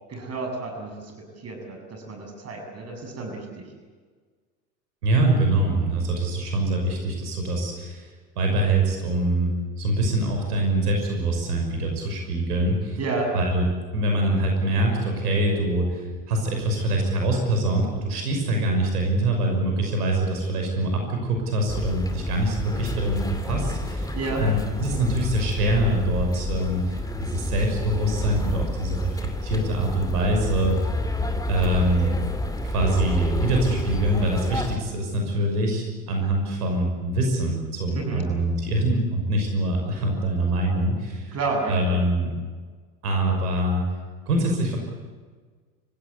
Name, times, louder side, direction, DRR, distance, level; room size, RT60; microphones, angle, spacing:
voice 1, 0.1-3.7 13.0-13.3 24.1-24.4 37.9-38.3 41.3-42.0, right 3 dB, 30° right, 3 dB, 7.5 m, -30 dB
voice 2, 5.0-8.1 8.4-9.5 9.8-13.0 13.3-13.6 13.9-30.8 31.5-32.2 32.6-41.4 41.7-42.3 43.0-43.8 44.3-44.8, right 1 dB, 75° right, 2 dB, 6.2 m, -24 dB
sound 1, 21.7-34.8, left 1 dB, 10° left, 2.4 m, -29 dB
30.0 x 16.5 x 8.4 m, 1.5 s
hypercardioid pair, 80°, 47 cm